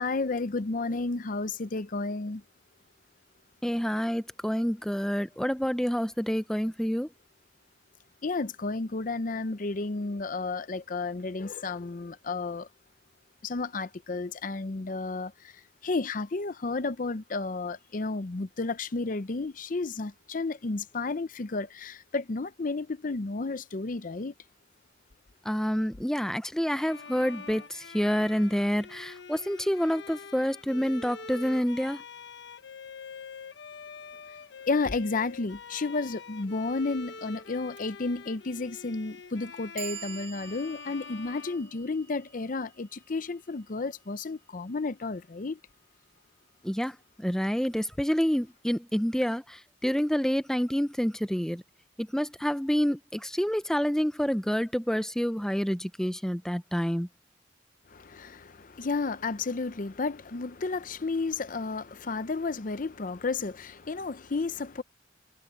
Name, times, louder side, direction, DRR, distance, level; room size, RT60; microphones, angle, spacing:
voice 1, 0.0-2.4 8.2-12.7 13.4-15.5 15.8-24.3 34.7-45.6 57.9-64.8, left 3 dB, 45° left, 0.6 m, -32 dB
voice 2, 3.6-7.1 25.4-32.0 46.6-51.6 52.0-57.1, equal, 5° left, 0.6 m, -28 dB
Bowed string instrument, 26.7-42.4, left 5 dB, 70° left, 1.3 m, -45 dB
Clock, 37.8-37.9 38.8-38.9 39.5-45.5, right 10 dB, 75° right, 2.3 m, -48 dB
head